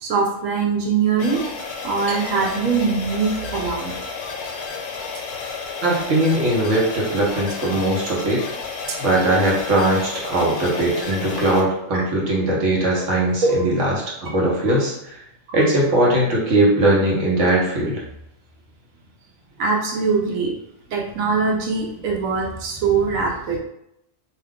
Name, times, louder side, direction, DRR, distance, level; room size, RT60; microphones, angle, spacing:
voice 1, 0.0-1.4 1.8-4.0 8.9-9.0 11.1-11.2 11.9-12.0 12.9-13.7 15.5-15.6 19.6-20.5 20.9-23.6, right 4 dB, 90° right, 0 dB, 1.1 m, -22 dB
sound 1, 1.2-11.6, left 5 dB, 65° left, 0.8 m, -31 dB
voice 2, 5.8-8.4 9.0-13.9 14.2-15.2 15.5-18.0, right 1 dB, 70° right, -4 dB, 1.1 m, -20 dB
2.7 x 2.2 x 3.5 m, 0.79 s
omnidirectional pair, 1.4 m